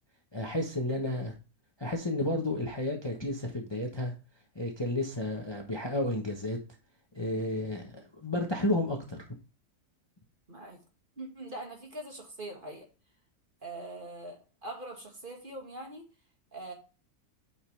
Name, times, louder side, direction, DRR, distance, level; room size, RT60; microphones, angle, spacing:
voice 1, 0.3-1.3 1.8-4.1 4.5-6.6 7.1-9.2, left 1 dB, 20° left, 1.1 m, -32 dB
voice 2, 0.9-1.2 7.3-7.7 10.5-10.8 11.2-12.9 13.6-16.1 16.5-16.7, right 2 dB, 35° right, 2.1 m, -43 dB
8.6 x 5.4 x 3.3 m
omnidirectional pair, 1.6 m